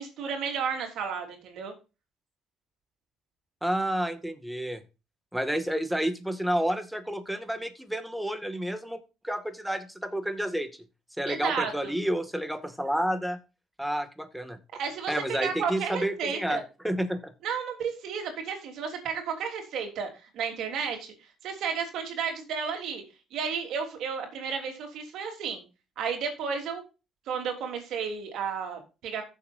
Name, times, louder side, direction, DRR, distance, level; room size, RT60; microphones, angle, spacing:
voice 1, 0.0-1.7 11.3-11.9 14.8-16.6 17.4-21.1 21.4-23.0 23.3-25.6 26.0-26.8 27.3-29.2, right 6 dB, 70° right, 4 dB, 3.4 m, -32 dB
voice 2, 3.6-4.8 5.3-10.8 11.2-13.4 13.8-14.6 15.1-17.3, right 1 dB, 5° right, 9 dB, 2.0 m, -30 dB
15.0 x 7.3 x 2.6 m, 0.30 s
supercardioid pair, 70°, 0 cm